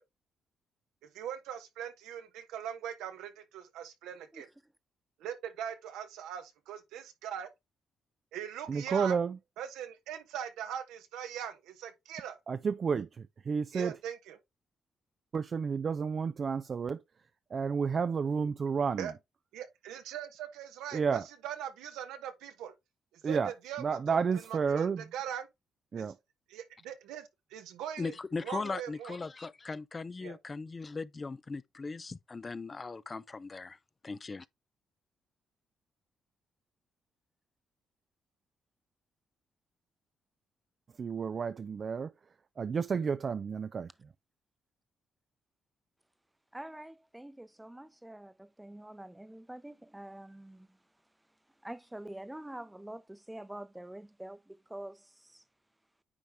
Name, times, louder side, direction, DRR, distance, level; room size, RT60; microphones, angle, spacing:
voice 1, 1.1-4.5 5.2-7.5 8.3-9.2 9.6-12.4 13.7-14.4 19.0-19.1 19.5-22.7 23.2-25.5 25.9-26.0 26.5-28.1 28.4-29.2 30.2-30.4, right 9 dB, 90° right, 1.0 m, -41 dB
voice 2, 8.7-9.4 12.5-13.1 13.5-13.9 15.3-17.0 17.5-19.1 20.9-21.2 23.2-23.5 23.8-25.0 25.9-26.1 41.0-42.1 42.6-43.9, right 6 dB, 50° right, 0.4 m, -31 dB
voice 3, 28.0-33.8 34.0-34.5, left 4 dB, 35° left, 0.4 m, -39 dB
voice 4, 46.5-50.7 51.6-55.4, right 1 dB, 10° right, 0.7 m, -46 dB
9.6 x 3.4 x 3.5 m
supercardioid pair, 65°, 0 cm